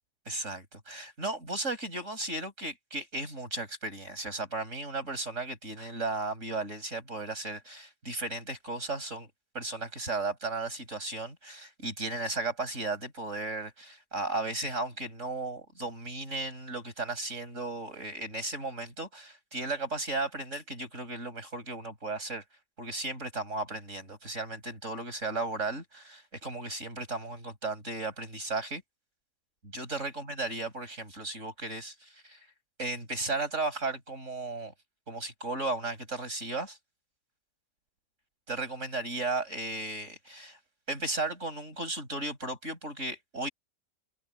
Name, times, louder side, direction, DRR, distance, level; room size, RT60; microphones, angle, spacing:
voice 1, 0.3-9.3 9.5-22.4 22.8-28.8 29.7-32.4 32.8-34.7 35.1-36.8 38.5-40.6 40.9-43.5, right 2 dB, 55° right, 7.4 m, -35 dB
omnidirectional pair, 1.6 m